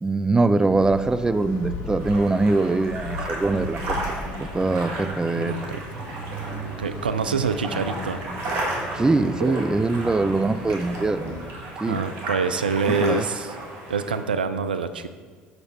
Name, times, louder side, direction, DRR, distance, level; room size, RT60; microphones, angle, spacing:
voice 1, 0.0-4.0 4.4-5.6 8.9-11.2 11.8-12.0 12.9-13.3, right 3 dB, 15° right, 13 dB, 0.4 m, -22 dB
sound 1, 0.7-11.4, equal, 55° left, 1.5 m, -36 dB
sound 2, 2.0-14.2, right 2 dB, 60° right, 1.8 m, -34 dB
voice 2, 5.3-5.8 6.6-8.2 11.9-13.5 13.9-15.1, right 5 dB, 90° right, 11 dB, 0.3 m, -26 dB
6.6 x 6.4 x 4.2 m, 1.6 s
hypercardioid pair, 60°, 5 cm